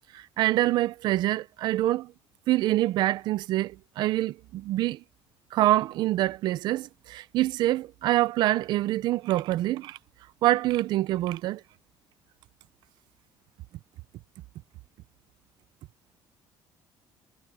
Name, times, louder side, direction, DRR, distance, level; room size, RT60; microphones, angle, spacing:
voice 1, 0.1-2.1 2.5-5.0 5.5-10.0 10.4-11.6, right 15 dB, 60° right, 0.5 m, -25 dB
cardioid pair, 165°, 8 cm